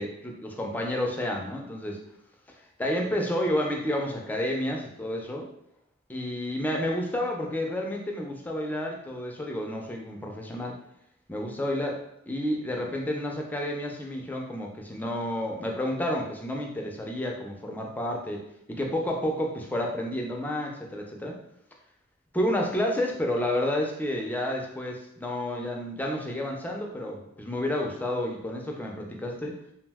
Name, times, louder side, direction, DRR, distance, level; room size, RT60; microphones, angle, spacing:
voice 1, 0.4-2.0 2.8-5.5 6.1-10.8 11.3-12.0 12.3-21.4 22.3-29.6, left 1 dB, 10° left, 0 dB, 0.4 m, -30 dB
2.6 x 2.1 x 3.3 m, 0.75 s
head